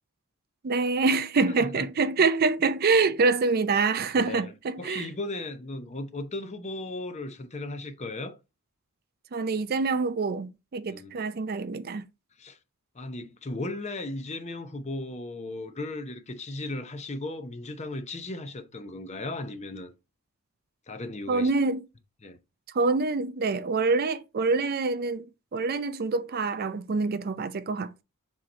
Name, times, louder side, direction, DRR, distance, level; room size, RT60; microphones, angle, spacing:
voice 1, 0.6-5.1 9.3-12.1 21.3-21.8 22.7-25.3 25.5-28.0, right 4 dB, 45° right, 0.4 m, -26 dB
voice 2, 4.1-4.5 4.8-8.4 10.9-11.1 12.4-12.6 12.9-19.9 20.9-21.5 22.2-22.4, left 2 dB, 30° left, 0.7 m, -36 dB
7.4 x 3.0 x 4.1 m
head